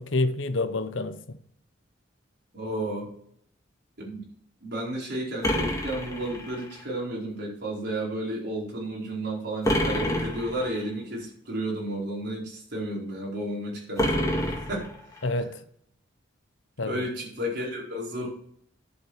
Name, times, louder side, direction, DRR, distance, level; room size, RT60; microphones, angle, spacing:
voice 1, 0.0-1.4 15.2-15.6 16.8-17.1, left 2 dB, 90° left, 0.9 m, -28 dB
voice 2, 2.5-3.1 4.0-4.2 4.6-14.9 16.8-18.3, right 1 dB, 60° right, 4.7 m, -32 dB
sound 1, 5.4-6.8 9.6-10.8 14.0-15.3, equal, 20° left, 2.0 m, -28 dB
11.0 x 7.3 x 4.9 m
head